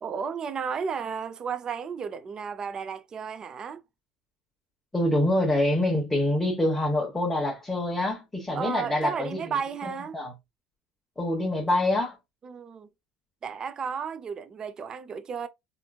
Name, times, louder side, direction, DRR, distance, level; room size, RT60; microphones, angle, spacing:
voice 1, 0.0-3.8 8.5-10.2 12.4-12.9 13.4-15.5, right 6 dB, 30° right, 0.4 m, -33 dB
voice 2, 4.9-9.4 9.8-10.3 11.2-12.2, left 1 dB, 10° left, 1.0 m, -26 dB
3.5 x 2.6 x 2.3 m
supercardioid pair, 115°, 2 cm